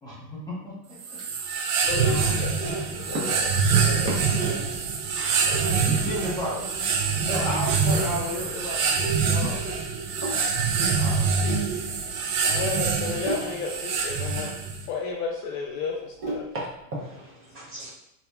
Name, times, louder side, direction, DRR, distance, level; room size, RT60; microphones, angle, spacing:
voice 1, 0.0-0.7 1.4-1.5 2.6-3.1 5.4-6.6 7.1-9.5 10.9-11.2, left 1 dB, 10° left, -6 dB, 1.0 m, -34 dB
sound 1, 1.0-14.9, right 5 dB, 75° right, 0.6 m, -25 dB
voice 2, 1.9-3.4 3.7-4.7 10.2-10.9 12.4-14.6 14.9-16.4, left 4 dB, 50° left, -1 dB, 0.4 m, -33 dB
voice 3, 3.3-3.7 4.1-4.2 4.5-4.8 5.1-6.1 9.4-9.5 16.5-17.9, right 1 dB, 30° right, -5 dB, 0.6 m, -36 dB
Sink (filling or washing), 7.7-16.8, right 1 dB, 55° right, 1.3 m, -39 dB
2.8 x 2.2 x 2.3 m, 0.81 s
supercardioid pair, 120°, 46 cm